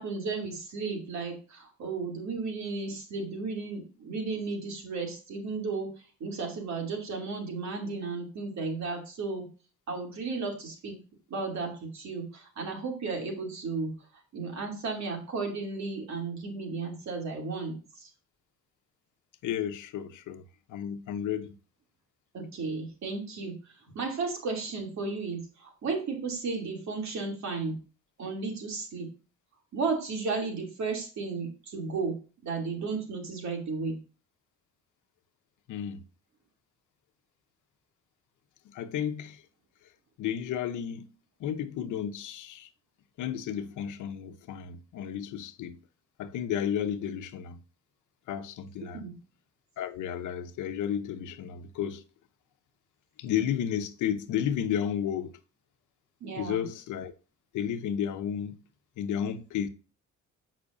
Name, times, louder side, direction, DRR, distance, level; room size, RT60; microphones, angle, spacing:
voice 1, 0.0-5.9 6.2-9.5 9.9-11.0 11.3-13.9 14.3-18.1 22.3-23.6 23.9-27.8 28.2-29.1 29.7-32.2 32.4-34.0 48.9-49.1 56.2-56.6, right 4 dB, 65° right, 2.8 m, -34 dB
voice 2, 19.4-20.4 20.7-21.5 35.7-36.0 38.7-39.4 40.2-41.1 41.4-42.7 43.2-45.8 46.2-47.6 48.3-49.0 49.8-52.0 53.2-55.4 56.4-57.1 57.5-58.6 59.0-59.7, left 9 dB, 80° left, 0.9 m, -32 dB
8.3 x 5.9 x 2.6 m
cardioid pair, 90°, 30 cm